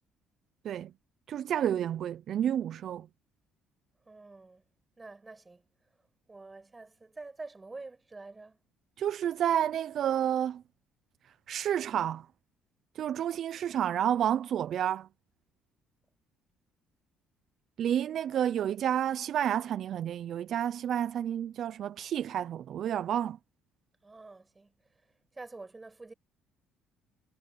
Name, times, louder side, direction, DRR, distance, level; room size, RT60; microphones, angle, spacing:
voice 1, 1.3-3.1 9.0-10.6 11.5-12.3 12.9-15.1 17.8-23.4, right 10 dB, 60° right, 0.7 m, -30 dB
voice 2, 4.1-4.6 5.0-5.6 6.3-8.6 24.0-24.7 25.3-26.1, right 3 dB, 20° right, 6.3 m, -47 dB
supercardioid pair, 75°, 0 cm